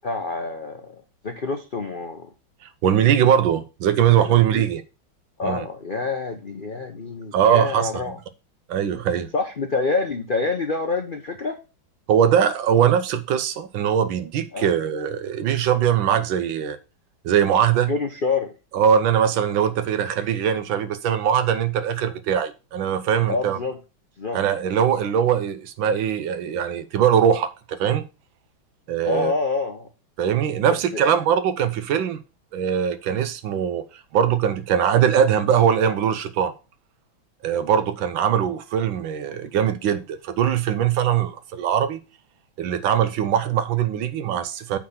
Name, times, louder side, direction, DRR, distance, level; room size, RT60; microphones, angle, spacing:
voice 1, 0.0-0.9 1.2-2.3 4.2-4.6 5.4-8.2 9.3-11.6 14.5-14.7 17.9-18.5 23.3-23.8 24.2-24.4 29.1-29.9 30.9-31.0, left 3 dB, 45° left, 0.6 m, -27 dB
voice 2, 2.8-4.8 5.4-5.6 7.3-7.9 8.7-9.3 12.1-16.8 17.2-17.9 18.7-23.6 24.3-28.0 28.9-29.3 30.2-32.2 32.5-36.5 37.4-42.0 42.6-44.8, right 9 dB, 75° right, 1.6 m, -21 dB
8.6 x 4.2 x 5.8 m
omnidirectional pair, 2.2 m